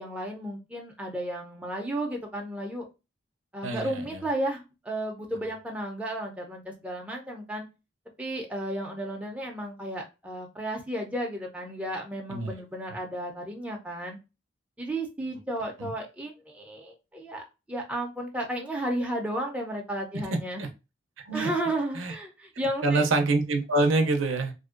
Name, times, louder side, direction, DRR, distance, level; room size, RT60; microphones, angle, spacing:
voice 1, 0.0-2.8 3.5-7.7 8.2-14.2 14.8-20.6 21.3-23.1, right 1 dB, 5° right, 0 dB, 0.5 m, -33 dB
voice 2, 3.6-4.2 12.3-12.5 15.8-15.9 20.6-20.7 21.3-21.5 21.9-22.1 22.8-24.5, right 2 dB, 85° right, 5 dB, 0.5 m, -25 dB
2.5 x 2.1 x 2.4 m, 0.27 s
head